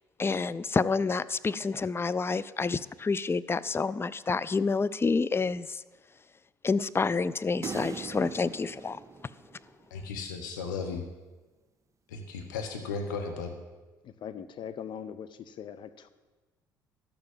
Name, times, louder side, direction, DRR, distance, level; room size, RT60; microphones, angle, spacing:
voice 1, 0.2-5.8 6.6-9.0, left 4 dB, 25° left, 16 dB, 0.5 m, -28 dB
sound 1, 7.6-10.0, right 6 dB, 30° right, 0.6 m, -41 dB
voice 2, 9.9-11.0 12.1-13.5, left 4 dB, 85° left, 4 dB, 1.0 m, -35 dB
voice 3, 14.0-16.1, left 8 dB, 55° left, 12 dB, 0.8 m, -41 dB
12.0 x 6.7 x 7.4 m, 1.2 s
hypercardioid pair, 55°, 10 cm